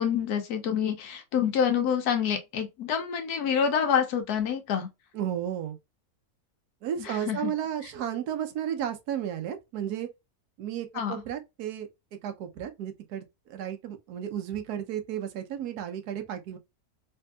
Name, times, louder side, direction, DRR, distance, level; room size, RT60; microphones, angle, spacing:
voice 1, 0.0-4.9 7.0-7.5 10.9-11.2, left 7 dB, 85° left, 1.3 m, -27 dB
voice 2, 5.1-5.8 6.8-10.1 10.6-11.9 12.2-16.6, right 10 dB, 85° right, 1.2 m, -33 dB
3.3 x 2.7 x 2.2 m
omnidirectional pair, 1.6 m